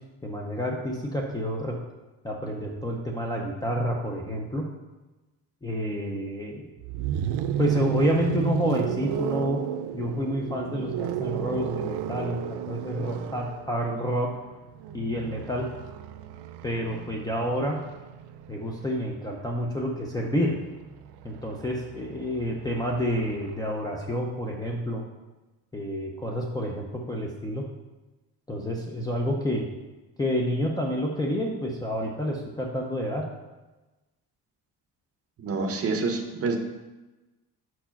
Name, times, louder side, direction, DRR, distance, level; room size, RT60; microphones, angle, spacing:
voice 1, 0.2-1.8 2.2-4.6 5.6-6.7 7.6-9.6 9.9-12.4 12.7-14.3 14.9-15.7 16.6-17.8 18.5-20.5 21.2-25.0 25.7-27.7 28.5-29.7 30.2-33.2, equal, 10° left, -3 dB, 0.4 m, -29 dB
sound 1, 6.8-18.7 20.0-23.6, right 10 dB, 80° right, 0.5 m, -33 dB
voice 2, 35.4-36.6, right 3 dB, 35° right, 5 dB, 0.7 m, -27 dB
5.0 x 4.6 x 5.7 m, 1.1 s
cardioid pair, 180°, 40 cm